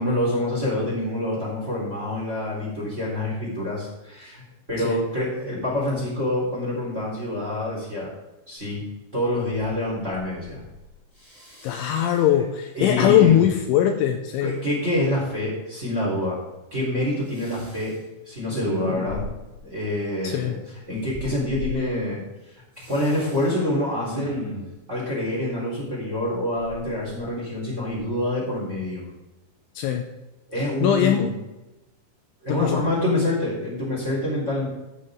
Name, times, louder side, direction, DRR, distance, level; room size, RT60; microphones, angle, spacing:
voice 1, 0.0-4.4 4.7-8.1 8.5-8.8 9.1-10.6 12.3-12.4 12.7-13.3 14.4-16.4 16.7-17.9 18.3-19.2 19.6-22.2 22.5-24.4 24.9-29.0 30.5-31.3 32.4-34.7, left 1 dB, 15° right, -3 dB, 3.7 m, -26 dB
Respiratory sounds, 8.7-8.8 9.3-9.8 10.1-10.8 11.2-12.2 12.9-13.7 17.3-17.9 18.5-19.6 21.1-21.7 22.8-23.5 24.0-24.8 26.6-27.5 27.9-28.1, left 1 dB, 5° left, 2.6 m, -35 dB
voice 2, 11.6-14.5 20.2-20.6 29.8-30.0 30.8-31.3 32.6-32.8, left 10 dB, 80° left, 5 dB, 2.8 m, -20 dB
13.0 x 7.6 x 3.8 m, 1.0 s
omnidirectional pair, 5.8 m